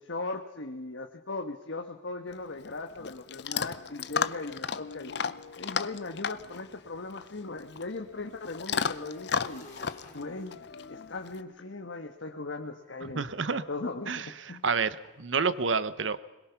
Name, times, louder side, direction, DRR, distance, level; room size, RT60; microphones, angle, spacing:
voice 1, 0.0-5.1 5.5-9.7 10.1-13.3 13.5-14.6, left 3 dB, 85° left, 4 dB, 1.3 m, -38 dB
Chewing mastication / Dog, 2.3-11.4, left 6 dB, 60° left, 0.7 m, -35 dB
Motorcycle / Engine, 6.8-13.0, left 2 dB, 45° left, 4.7 m, -55 dB
voice 2, 13.1-13.6 14.1-16.2, right 5 dB, 85° right, 14 dB, 1.0 m, -29 dB
22.0 x 21.5 x 5.9 m, 1.1 s
head